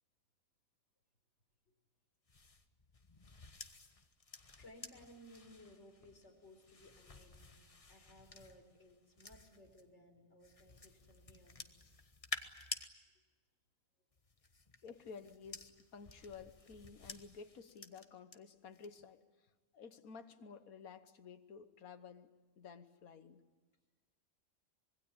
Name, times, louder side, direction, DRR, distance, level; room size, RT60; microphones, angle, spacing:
sound 1, 2.3-9.8 10.4-12.9 14.1-18.4 18.7-19.1, left 3 dB, 25° left, 1.2 m, -51 dB
voice 1, 4.6-7.6 7.9-11.6, left 1 dB, 50° left, 2 dB, 4.6 m, -60 dB
voice 2, 14.8-19.2 19.7-23.4, left 5 dB, 80° left, 10 dB, 1.7 m, -53 dB
25.5 x 21.5 x 8.8 m, 1.4 s
omnidirectional pair, 1.5 m